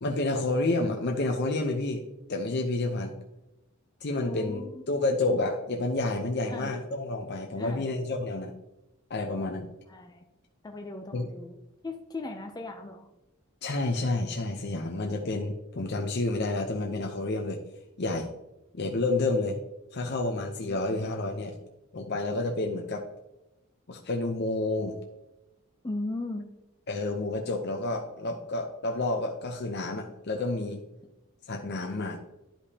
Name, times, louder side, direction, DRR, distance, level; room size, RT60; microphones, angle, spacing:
voice 1, 0.0-2.0 2.3-3.1 4.0-8.5 9.1-9.7 11.1-11.3 13.6-17.6 18.0-18.3 18.7-19.6 19.9-21.6 21.9-23.1 23.9-25.0 26.9-30.8 31.5-32.2, left 2 dB, 55° left, 2 dB, 0.7 m, -29 dB
voice 2, 4.2-5.0 6.5-6.8 7.6-7.9 9.9-10.2 10.6-11.6 11.8-13.1 25.8-26.5, left 2 dB, 20° left, 3 dB, 0.6 m, -38 dB
11.5 x 5.1 x 2.8 m, 0.93 s
head